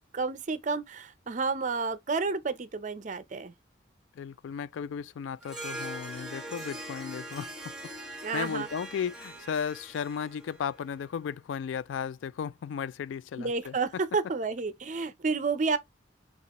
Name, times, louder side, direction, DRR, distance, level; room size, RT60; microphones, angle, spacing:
voice 1, 0.1-3.5 8.2-8.7 13.4-15.8, right 4 dB, 40° right, 0.5 m, -30 dB
voice 2, 4.2-7.7 8.1-13.8, left 7 dB, 90° left, 0.3 m, -35 dB
Harp, 5.4-11.1, right 1 dB, 5° right, 1.0 m, -42 dB
6.6 x 2.4 x 2.9 m
head